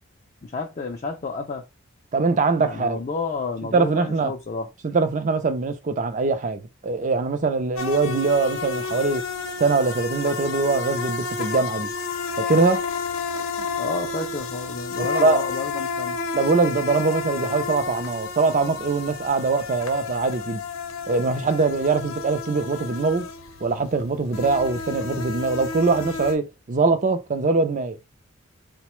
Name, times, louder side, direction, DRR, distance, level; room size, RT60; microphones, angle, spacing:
voice 1, 0.4-1.7 2.6-4.7 13.8-16.2, left 4 dB, 35° left, 0.4 m, -31 dB
voice 2, 2.1-3.0 3.7-4.3 4.8-9.2 9.6-11.9 12.4-12.8 15.1-15.4 16.3-20.6 21.1-23.3 23.6-28.0, right 3 dB, 35° right, 0.4 m, -22 dB
sound 1, 7.8-26.3, left 4 dB, 80° left, 0.7 m, -31 dB
3.9 x 2.1 x 3.0 m
head